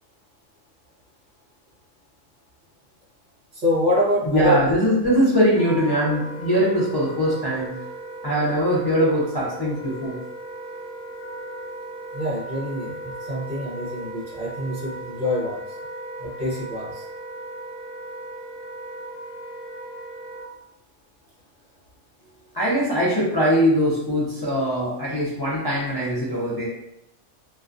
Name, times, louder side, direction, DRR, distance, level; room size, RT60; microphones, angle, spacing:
voice 1, 3.6-4.6 12.1-15.6 16.2-17.0, left 1 dB, 45° right, -6 dB, 0.8 m, -25 dB
voice 2, 4.2-7.8 8.2-10.2 22.5-26.6, equal, 40° left, -9 dB, 0.3 m, -21 dB
Wind instrument woodwind instrument, 5.5-20.5, right 2 dB, 25° right, 0.4 m, -37 dB
2.3 x 2.3 x 2.5 m, 0.80 s
omnidirectional pair, 1.3 m